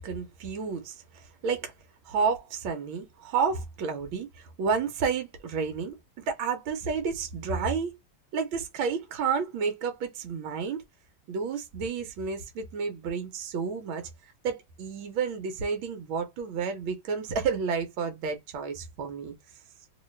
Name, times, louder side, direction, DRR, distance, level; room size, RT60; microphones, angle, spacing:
voice 1, 0.0-1.7 2.0-7.9 8.3-10.8 11.3-14.1 14.4-19.3, right 5 dB, 80° right, 1.6 m, -31 dB
3.2 x 2.8 x 3.2 m
omnidirectional pair, 2.1 m